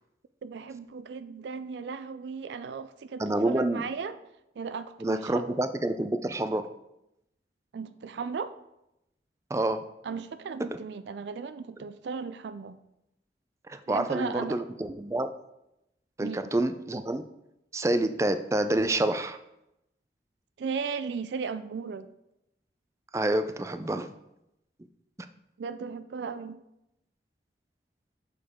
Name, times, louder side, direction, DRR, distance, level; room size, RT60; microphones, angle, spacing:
voice 1, 0.4-4.2 4.6-5.6 7.7-8.6 10.0-12.8 13.9-14.6 16.2-16.5 20.6-22.1 25.6-26.6, right 5 dB, 80° right, 12 dB, 0.4 m, -36 dB
voice 2, 3.2-3.8 5.0-6.7 9.5-9.8 10.7-10.8 13.7-15.3 16.2-17.2 17.7-19.4 23.1-24.1, right 1 dB, 15° right, 10 dB, 0.4 m, -28 dB
8.4 x 6.7 x 3.6 m, 0.88 s
head